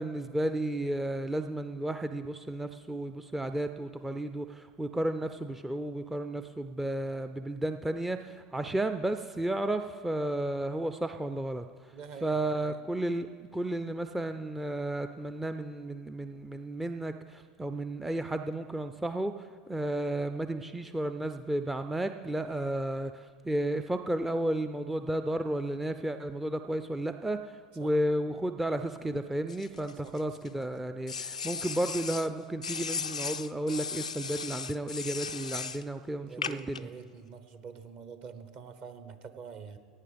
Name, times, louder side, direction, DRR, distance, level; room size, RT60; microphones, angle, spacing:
voice 1, 0.0-11.6 12.2-36.9, right 1 dB, 5° right, 8 dB, 0.5 m, -33 dB
voice 2, 11.9-12.8 27.8-27.9 30.0-30.1 36.3-39.8, right 6 dB, 45° right, 9 dB, 1.2 m, -46 dB
sound 1, 29.5-30.5 31.1-32.3 32.6-35.8 36.4-36.8, left 5 dB, 85° left, 0.4 m, -36 dB
16.5 x 9.1 x 5.2 m, 2.1 s
figure-of-eight pair, 80°, 4 cm